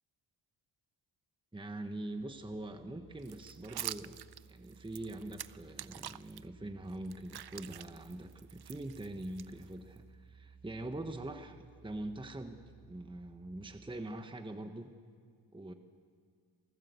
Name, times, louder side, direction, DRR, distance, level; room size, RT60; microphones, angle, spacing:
voice 1, 1.5-4.2 4.5-14.9 15.5-15.7, right 1 dB, 10° right, 7 dB, 1.2 m, -43 dB
Musical instrument, 2.2-14.2, right 6 dB, 85° right, 5.6 m, -59 dB
sound 1, 3.2-6.4 6.9-10.0, right 11 dB, 50° right, 0.6 m, -46 dB
28.0 x 18.5 x 8.2 m, 2.1 s
wide cardioid pair, 120°, 50 cm